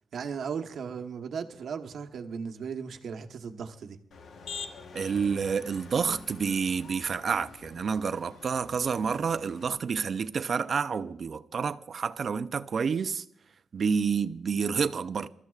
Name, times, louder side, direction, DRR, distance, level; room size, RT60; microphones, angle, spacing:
voice 1, 0.1-4.0, right 6 dB, 70° right, 1.1 m, -36 dB
Motor vehicle (road), 4.1-9.7, left 5 dB, 65° left, 1.1 m, -46 dB
voice 2, 4.9-13.2 13.7-15.3, right 6 dB, 50° right, 0.5 m, -29 dB
28.5 x 13.5 x 2.4 m
wide cardioid pair, 150°, 0 cm